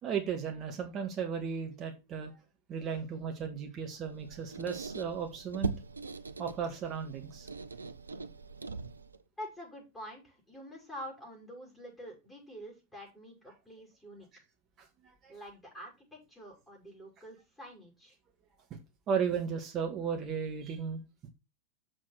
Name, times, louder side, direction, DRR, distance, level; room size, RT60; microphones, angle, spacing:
voice 1, 0.0-2.3 2.7-5.8 6.4-7.5 14.8-15.4 18.7-18.8 19.1-21.0, right 7 dB, 30° right, 4 dB, 1.7 m, -35 dB
Squeak, 4.0-9.2, right 4 dB, 75° right, 0.6 m, -41 dB
voice 2, 9.4-14.3 15.3-18.2, equal, 10° left, -2 dB, 6.2 m, -47 dB
7.2 x 6.7 x 5.8 m, 0.27 s
figure-of-eight pair, 90°, 0 cm